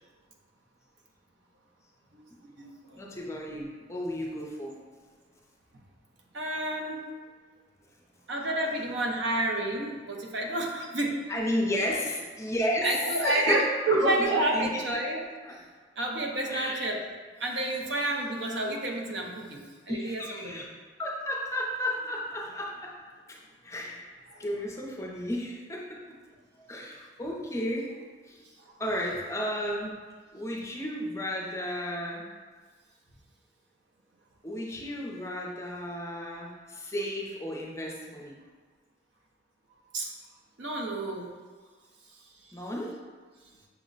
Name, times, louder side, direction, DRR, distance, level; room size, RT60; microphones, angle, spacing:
voice 1, 2.1-3.1 6.3-7.0 8.3-11.2 12.8-15.2 15.5-15.6 16.0-17.0 17.4-20.6 24.3-24.4 28.6-28.7 39.9-40.1 40.6-41.3, right 2 dB, 70° right, 0 dB, 0.7 m, -30 dB
voice 2, 2.9-4.8 11.3-13.6 13.9-14.8 15.4-15.5 16.5-16.9 19.9-20.7 21.0-22.9 23.6-24.1 24.4-26.0 26.7-27.9 28.3-28.4 28.8-30.0 30.3-32.3 34.4-38.4 42.5-42.9, left 1 dB, 15° left, -2 dB, 0.5 m, -33 dB
5.9 x 2.1 x 3.8 m, 1.5 s
head